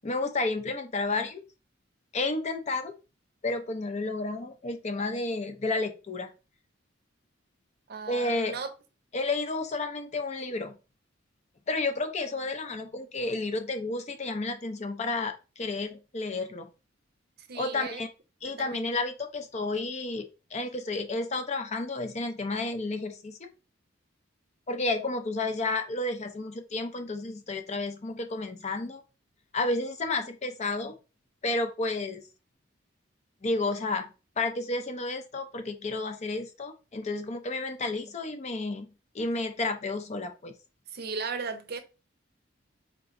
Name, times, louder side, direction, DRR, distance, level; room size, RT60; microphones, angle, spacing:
voice 1, 0.0-1.4 2.1-2.9 3.4-6.3 8.1-8.6 9.1-10.8 11.7-16.7 17.5-18.1 18.4-20.3 20.5-23.5 24.7-29.0 29.5-30.9 31.4-32.2 33.4-34.1 34.4-40.5, left 2 dB, 35° left, 0.5 m, -31 dB
voice 2, 7.9-8.7 17.5-18.0 18.4-18.9 40.9-41.8, right 4 dB, 55° right, 0.6 m, -36 dB
4.7 x 3.0 x 2.6 m
head